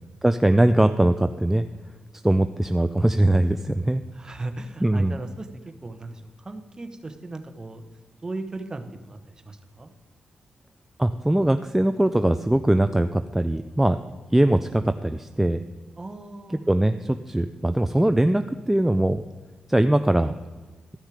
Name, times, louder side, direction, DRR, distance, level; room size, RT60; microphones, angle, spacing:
voice 1, 0.2-1.6 2.2-4.0 4.8-5.2 11.0-14.0 14.3-15.6 16.7-19.2 19.7-20.3, right 1 dB, 10° right, 9 dB, 0.4 m, -21 dB
voice 2, 4.1-7.9 8.2-9.9 16.0-16.6, right 2 dB, 25° right, 7 dB, 1.1 m, -37 dB
13.0 x 6.3 x 5.0 m, 1.3 s
cardioid pair, 85°, 3 cm